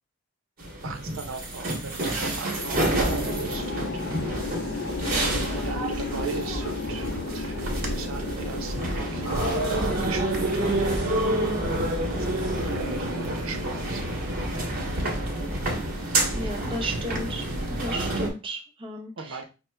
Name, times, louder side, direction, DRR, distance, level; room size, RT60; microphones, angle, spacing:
sound 1, 0.6-18.3, right 1 dB, 45° right, 1.1 m, -28 dB
voice 1, 0.8-4.7 5.4-11.1 12.0-14.2 16.1-16.3 19.2-19.4, right 5 dB, 85° right, 7 dB, 0.6 m, -38 dB
sound 2, 2.5-14.9, left 4 dB, 60° left, 0.4 m, -36 dB
voice 2, 16.3-17.4 17.8-19.4, right 1 dB, 25° right, 2 dB, 0.7 m, -34 dB
5.7 x 2.1 x 3.2 m, 0.31 s
head